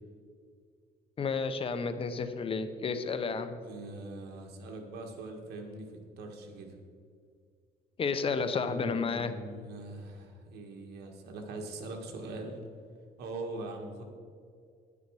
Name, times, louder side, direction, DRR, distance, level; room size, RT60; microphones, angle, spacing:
voice 1, 1.2-3.6 8.0-9.4, left 5 dB, 35° left, 10 dB, 0.8 m, -31 dB
voice 2, 3.6-6.7 8.6-12.6 13.2-14.0, right 2 dB, 75° right, 3 dB, 1.7 m, -42 dB
9.8 x 9.4 x 4.8 m, 2.2 s
cardioid pair, 110°, 17 cm